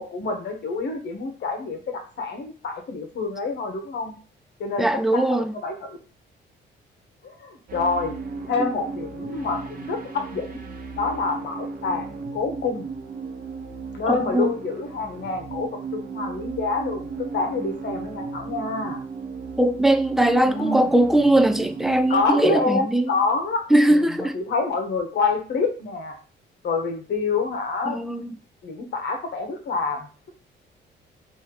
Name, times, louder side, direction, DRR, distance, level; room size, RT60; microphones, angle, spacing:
voice 1, 0.0-4.1 4.6-6.0 7.2-8.2 8.5-10.6 10.9-12.8 13.9-19.0 20.4-20.9 22.1-26.2 26.6-28.0 28.6-30.1, left 4 dB, 60° left, 1.2 m, -27 dB
voice 2, 4.8-5.5 14.1-14.5 19.6-23.1 23.7-24.4 27.9-28.3, right 1 dB, ahead, 0.4 m, -20 dB
sound 1, 7.7-22.3, right 4 dB, 45° right, 0.8 m, -35 dB
3.4 x 2.8 x 4.7 m
cardioid pair, 90°, 20 cm